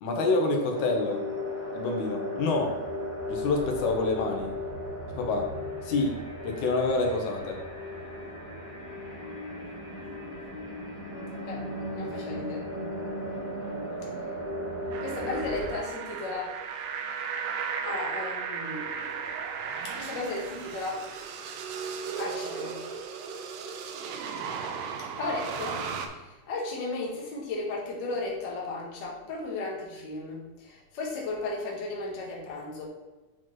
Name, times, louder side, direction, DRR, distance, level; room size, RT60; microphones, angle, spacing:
voice 1, 0.0-1.2 1.7-2.7 3.3-4.5 5.2-5.5 5.8-6.2 6.4-7.6 13.9-14.1, left 3 dB, 85° left, 2 dB, 2.3 m, -27 dB
sound 1, 0.7-15.7, left 1 dB, 25° left, 1.7 m, -36 dB
voice 2, 11.4-12.7 15.0-16.5 17.8-19.4 19.8-21.1 22.2-22.8 25.1-32.9, left 3 dB, 50° left, -3 dB, 1.5 m, -35 dB
sound 2, 14.9-26.1, right 6 dB, 80° right, 1.8 m, -35 dB
7.7 x 4.4 x 3.1 m, 1.2 s
omnidirectional pair, 3.3 m